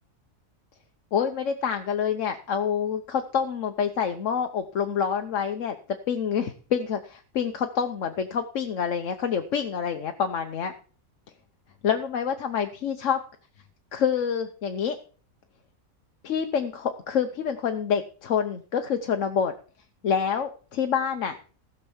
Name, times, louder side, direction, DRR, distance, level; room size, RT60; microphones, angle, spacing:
voice 1, 1.1-5.8 6.1-10.7 11.8-13.2 13.9-15.0 16.2-19.5 20.0-21.4, left 7 dB, 65° left, 6 dB, 1.2 m, -27 dB
15.5 x 5.5 x 7.1 m, 0.41 s
omnidirectional pair, 1.5 m